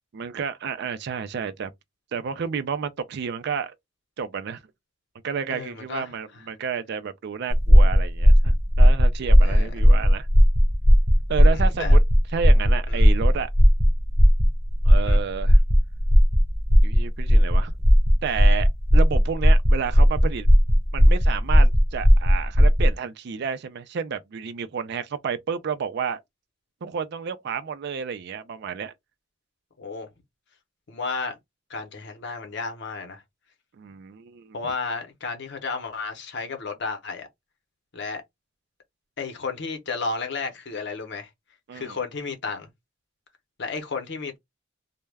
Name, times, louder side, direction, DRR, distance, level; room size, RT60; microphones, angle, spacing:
voice 1, 0.1-1.7 2.1-3.7 4.2-4.6 5.2-10.3 11.3-12.0 12.3-13.5 14.8-15.6 16.8-17.7 18.2-20.5 20.9-26.2 26.8-28.9 33.7-34.6 41.7-42.0, right 6 dB, 60° right, 0.4 m, -31 dB
voice 2, 5.5-6.1 9.4-9.8 11.5-12.0 12.9-13.0 15.0-15.2 29.8-30.1 30.9-31.4 31.7-33.2 34.5-37.3 37.9-38.2 39.2-41.3 41.7-42.7 43.6-44.4, left 4 dB, 65° left, 0.7 m, -32 dB
sound 1, 7.5-22.9, equal, 35° right, 0.9 m, -16 dB
2.2 x 2.1 x 3.2 m
head